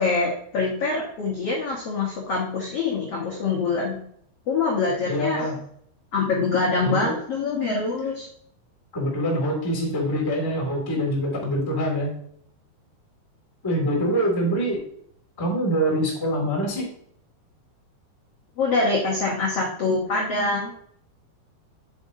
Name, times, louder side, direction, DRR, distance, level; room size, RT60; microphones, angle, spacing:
voice 1, 0.0-4.0 4.5-5.5 6.1-8.3 18.6-20.7, left 3 dB, 70° left, -3 dB, 1.4 m, -24 dB
voice 2, 5.1-5.6 6.8-7.2 8.9-12.1 13.6-14.8 15.4-16.9, equal, 10° left, -2 dB, 1.0 m, -24 dB
7.9 x 7.0 x 2.7 m, 0.64 s
omnidirectional pair, 4.8 m